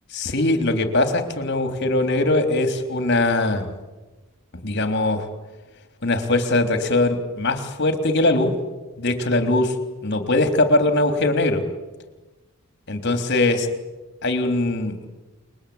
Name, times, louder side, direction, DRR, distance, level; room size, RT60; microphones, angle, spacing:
voice 1, 0.1-3.7 4.6-5.3 6.0-8.5 9.0-9.7 10.0-11.6 12.9-13.7 14.2-15.1, left 2 dB, 50° left, 7 dB, 3.5 m, -21 dB
30.0 x 21.5 x 8.7 m, 1.2 s
head